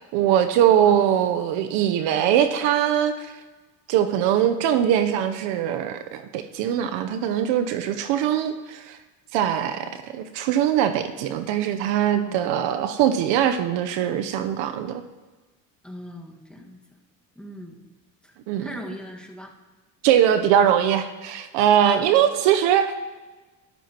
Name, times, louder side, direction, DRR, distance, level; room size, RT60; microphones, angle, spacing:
voice 1, 0.0-3.3 3.9-9.0 9.3-15.0 18.5-18.7 20.0-22.9, right 10 dB, 70° right, 9 dB, 0.9 m, -21 dB
voice 2, 12.2-12.5 15.8-16.8 17.3-17.8 18.2-19.5 21.8-22.1, equal, ahead, 0 dB, 1.6 m, -40 dB
12.5 x 11.0 x 3.0 m, 1.2 s
supercardioid pair, 85°, 46 cm